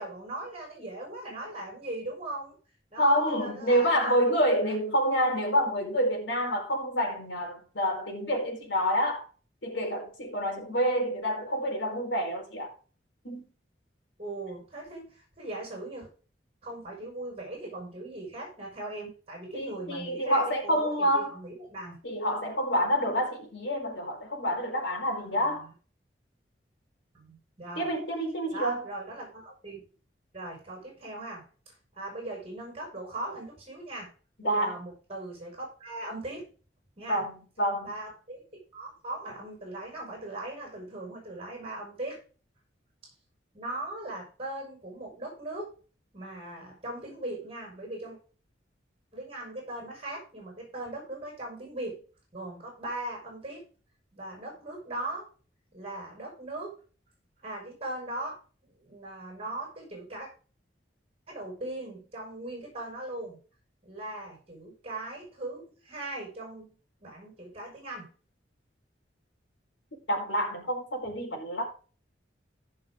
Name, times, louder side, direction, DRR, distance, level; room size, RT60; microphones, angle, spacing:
voice 1, 0.0-2.6 2.9-4.2 4.6-4.7 14.2-16.1 16.6-22.0 25.3-25.7 27.1-27.9 28.5-29.8 30.3-31.5 31.9-34.1 34.4-36.5 37.0-37.2 37.8-42.2 43.5-45.7 46.1-48.2 49.1-52.0 52.3-53.7 54.1-55.3 55.7-56.8 57.4-58.4 58.8-60.3 61.3-63.4 63.8-66.7 67.0-68.1, right 2 dB, 35° right, 6.2 m, -39 dB
voice 2, 3.0-9.2 9.6-12.7 13.2-13.5 19.5-21.3 22.0-25.7 27.8-28.9 34.4-34.8 37.1-38.0 70.1-71.7, equal, 85° left, 4.7 m, -28 dB
15.5 x 6.5 x 3.9 m
head